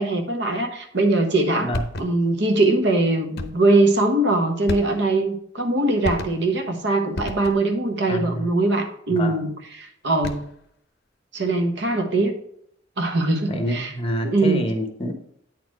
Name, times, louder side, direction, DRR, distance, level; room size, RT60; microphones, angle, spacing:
voice 1, 0.0-1.7 2.0-9.5 9.8-10.4 11.3-12.3 13.0-13.9 14.2-14.6, right 2 dB, 65° right, 5 dB, 1.2 m, -21 dB
sound 1, 1.7-2.4 3.4-3.8 4.7-5.3 6.0-6.6 7.1-7.8 10.0-10.7, left 2 dB, 55° left, 0.7 m, -33 dB
voice 2, 8.1-8.5 9.1-9.4 13.5-15.1, equal, 30° left, 5 dB, 1.1 m, -27 dB
9.0 x 4.5 x 4.7 m, 0.69 s
head